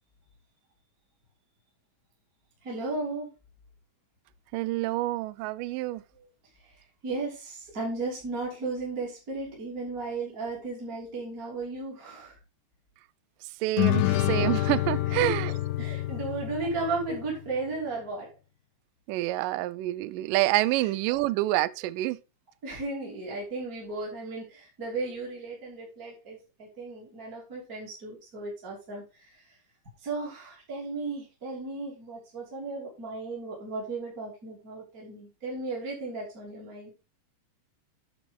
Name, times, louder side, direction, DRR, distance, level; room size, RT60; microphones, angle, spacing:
voice 1, 2.6-3.3 7.0-12.4 15.2-15.3 15.8-18.3 22.6-29.0 30.0-36.9, right 3 dB, 25° right, 3.1 m, -35 dB
voice 2, 4.5-6.0 13.4-15.5 19.1-22.2, right 17 dB, 80° right, 2.1 m, -27 dB
sound 1, 13.8-17.4, left 15 dB, 75° left, 2.1 m, -27 dB
9.2 x 6.8 x 3.7 m
omnidirectional pair, 3.9 m